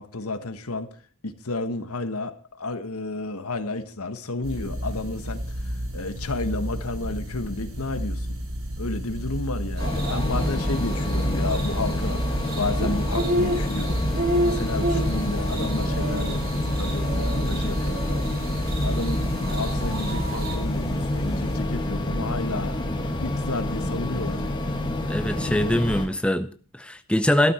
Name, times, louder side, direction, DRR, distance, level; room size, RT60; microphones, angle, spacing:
voice 1, 0.0-8.3 8.8-18.1 18.8-19.2 19.5-22.8 23.2-24.5, left 2 dB, 80° left, 1.4 m, -32 dB
sound 1, 4.4-21.6, equal, 70° right, 3.6 m, -31 dB
sound 2, 9.8-26.1, left 1 dB, 20° left, 1.9 m, -28 dB
sound 3, 9.8-20.6, right 1 dB, 45° right, 2.4 m, -31 dB
voice 2, 25.1-27.5, left 1 dB, 5° left, 0.6 m, -23 dB
13.0 x 12.0 x 4.4 m
head